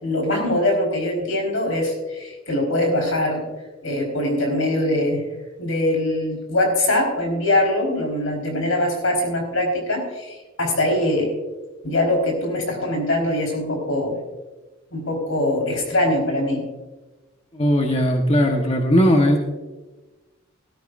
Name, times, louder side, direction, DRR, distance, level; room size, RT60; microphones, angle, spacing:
voice 1, 0.0-3.4 3.8-5.3 5.6-11.3 11.8-14.2 14.9-16.7, left 1 dB, 85° left, 1 dB, 4.3 m, -22 dB
voice 2, 17.5-19.4, equal, 30° left, 2 dB, 1.2 m, -18 dB
17.5 x 13.0 x 2.6 m, 1.2 s
head